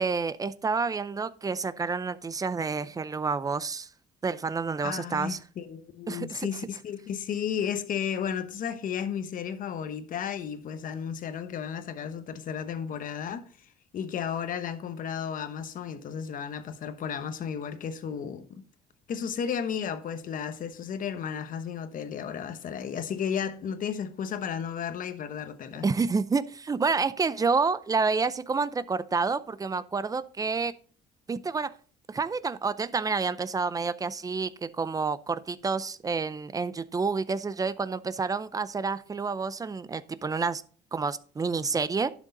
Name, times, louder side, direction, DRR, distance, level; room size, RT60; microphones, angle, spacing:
voice 1, 0.0-3.9 4.2-5.4 6.1-6.5 25.8-30.7 31.3-31.7 32.1-40.6 40.9-42.1, right 4 dB, 20° right, 0.5 m, -29 dB
voice 2, 4.8-13.5 13.9-18.7 19.1-25.9, left 7 dB, 55° left, 1.1 m, -33 dB
11.0 x 6.4 x 3.9 m
cardioid pair, 110°, 17 cm